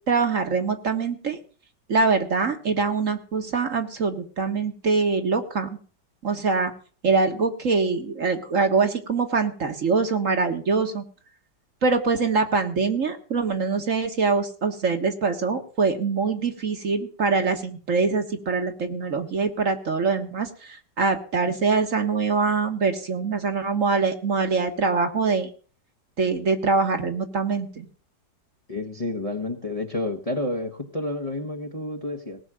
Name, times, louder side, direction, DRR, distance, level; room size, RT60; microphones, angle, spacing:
voice 1, 0.1-1.4 1.9-5.8 6.2-6.7 7.0-11.0 11.8-25.5 26.2-27.8, right 4 dB, 50° right, 6 dB, 1.7 m, -24 dB
voice 2, 28.7-32.4, left 2 dB, 25° left, 2 dB, 1.2 m, -30 dB
18.5 x 6.2 x 7.5 m, 0.41 s
omnidirectional pair, 1.8 m